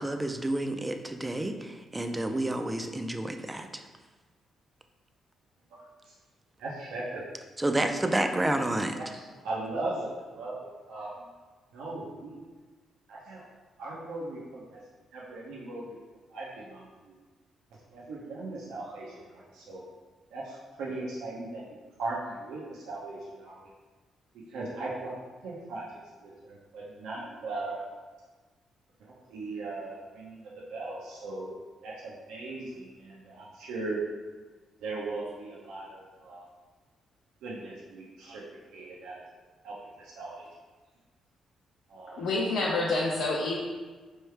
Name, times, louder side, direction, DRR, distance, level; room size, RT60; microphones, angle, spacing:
voice 1, 0.0-3.8 7.6-9.0, right 1 dB, 15° right, 6 dB, 0.4 m, -30 dB
voice 2, 5.7-6.1 6.6-7.2 8.9-11.3 11.7-12.4 13.1-13.5 13.8-14.8 15.1-15.9 16.3-17.1 17.9-19.8 20.3-23.6 24.3-25.2 25.4-27.9 29.0-34.0 34.8-36.5 37.4-38.4 38.7-39.2 39.6-40.5 41.9-42.3, right 2 dB, 90° right, -5 dB, 0.6 m, -38 dB
voice 3, 42.2-43.6, left 2 dB, 75° left, -4 dB, 0.7 m, -27 dB
4.5 x 3.2 x 3.3 m, 1.4 s
cardioid pair, 95°, 0 cm